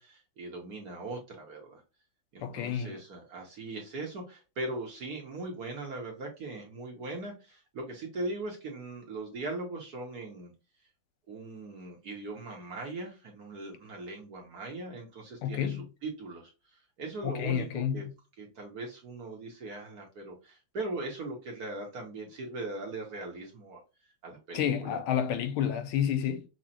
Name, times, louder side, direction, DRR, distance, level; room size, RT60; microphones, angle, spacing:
voice 1, 0.0-1.8 2.3-10.5 11.3-18.1 18.4-25.2, right 2 dB, 55° right, 1.3 m, -40 dB
voice 2, 2.4-3.0 15.4-15.8 17.2-18.0 24.5-26.4, left 9 dB, 75° left, 1.4 m, -30 dB
6.2 x 2.4 x 2.8 m
omnidirectional pair, 2.4 m